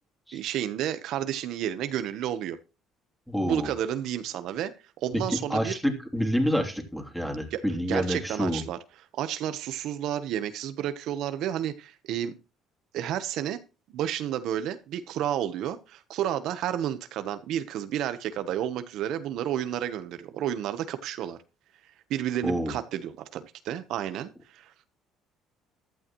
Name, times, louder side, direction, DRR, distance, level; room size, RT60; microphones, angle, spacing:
voice 1, 0.3-2.6 3.4-5.8 7.5-8.8 9.1-12.4 12.9-13.6 13.9-21.4 22.1-24.9, right 11 dB, 70° right, 1.1 m, -31 dB
voice 2, 3.3-3.7 5.1-5.2 5.5-8.6 22.4-22.7, equal, ahead, 3.1 m, -28 dB
15.0 x 12.0 x 3.1 m
cardioid pair, 110°, 0 cm